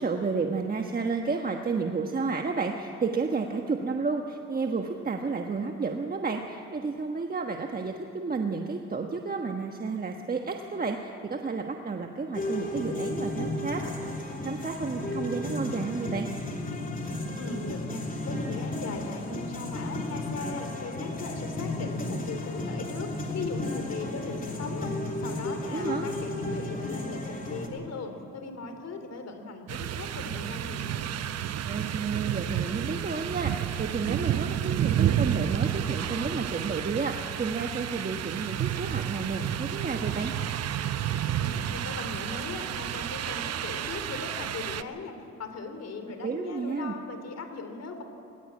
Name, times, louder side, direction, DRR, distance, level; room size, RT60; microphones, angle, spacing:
voice 1, 0.0-13.8 14.1-16.3 25.7-26.1 31.6-40.3 46.2-46.9, right 4 dB, 30° right, 3 dB, 1.3 m, -31 dB
sound 1, 12.3-27.7, left 2 dB, 30° left, 3.2 m, -33 dB
voice 2, 17.4-24.9 25.2-31.3 41.4-48.0, left 3 dB, 55° left, 6 dB, 3.2 m, -38 dB
sound 2, 29.7-44.8, right 10 dB, 55° right, 0.8 m, -30 dB
19.0 x 18.0 x 8.6 m, 2.7 s
cardioid pair, 90°, 30 cm